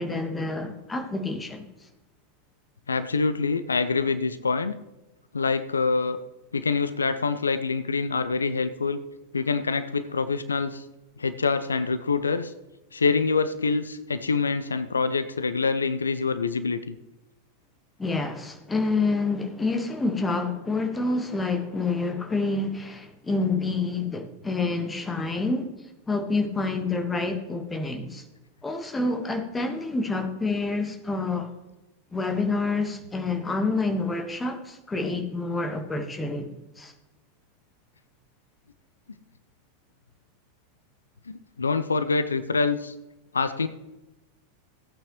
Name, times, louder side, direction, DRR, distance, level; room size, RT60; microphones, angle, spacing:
voice 1, 0.0-1.6 18.0-25.7 26.1-28.2 28.6-31.5 32.1-36.9, left 3 dB, 10° left, 5 dB, 1.4 m, -28 dB
voice 2, 2.9-4.7 5.3-6.2 6.5-9.0 9.3-10.9 11.2-12.5 12.9-17.0 41.3-42.9 43.3-43.7, left 4 dB, 75° left, 12 dB, 0.5 m, -25 dB
15.5 x 8.5 x 3.1 m, 1.0 s
figure-of-eight pair, 90°, 0 cm